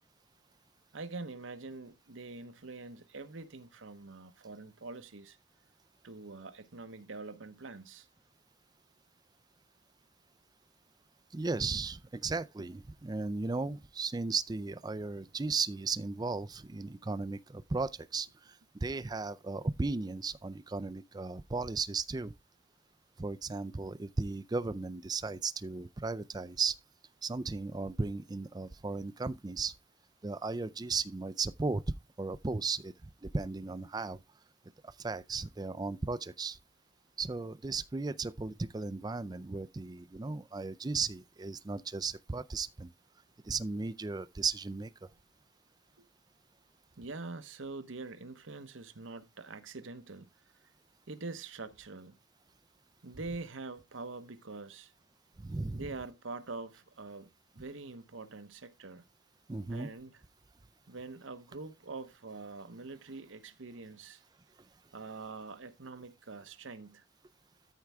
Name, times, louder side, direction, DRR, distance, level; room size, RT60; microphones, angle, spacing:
voice 1, 0.9-5.4 6.0-8.1 46.0-46.1 47.0-50.3 51.1-52.2 53.0-54.9 55.7-59.0 59.7-60.2 60.9-64.2 64.9-67.0, right 3 dB, 80° right, 1.0 m, -44 dB
voice 2, 11.3-22.3 23.2-26.8 27.2-29.7 30.2-31.8 32.2-34.2 34.8-36.6 37.2-42.9 43.4-44.9 55.4-55.9 59.5-59.9, right 4 dB, 20° right, 0.4 m, -36 dB
13.5 x 4.6 x 3.5 m
head